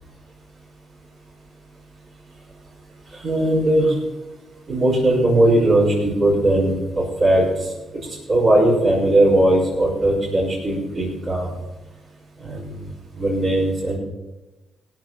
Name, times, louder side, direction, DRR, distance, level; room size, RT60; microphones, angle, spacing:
voice 1, 3.2-3.9 4.7-7.4 7.9-11.5 12.4-12.8 13.2-14.0, right 1 dB, 40° right, -8 dB, 5.4 m, -18 dB
18.0 x 7.5 x 5.8 m, 1.1 s
cardioid pair, 90°, 0 cm